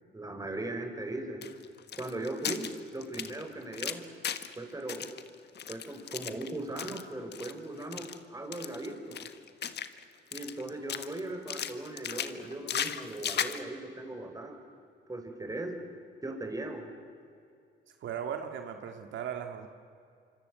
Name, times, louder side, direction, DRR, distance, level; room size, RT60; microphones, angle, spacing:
voice 1, 0.1-1.4 2.0-4.1 4.6-5.1 5.7-9.2 10.3-14.6 15.1-15.8 16.2-16.9, right 2 dB, 15° right, 4 dB, 5.2 m, -38 dB
sound 1, 1.4-4.6 4.9-7.0 7.3-7.5 7.8-8.2 8.5-10.0 10.3-11.2 11.5-13.6, left 8 dB, 60° left, 1.5 m, -36 dB
voice 2, 17.9-19.7, right 8 dB, 75° right, 5 dB, 2.0 m, -37 dB
26.0 x 26.0 x 7.9 m, 2.4 s
cardioid pair, 90°, 20 cm